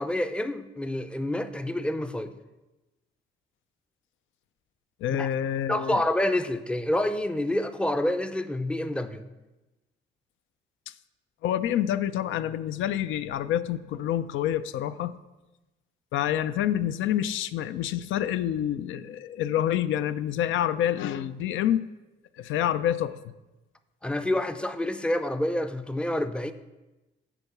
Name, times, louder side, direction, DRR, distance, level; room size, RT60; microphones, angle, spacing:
voice 1, 0.0-2.3 5.2-5.3 5.7-9.2 24.0-26.5, left 1 dB, 5° left, 10 dB, 0.4 m, -28 dB
voice 2, 5.0-6.0 11.4-15.1 16.1-21.9 22.4-23.3, left 11 dB, 80° left, 14 dB, 0.4 m, -27 dB
6.8 x 4.6 x 5.8 m, 1.1 s
cardioid pair, 90°, 20 cm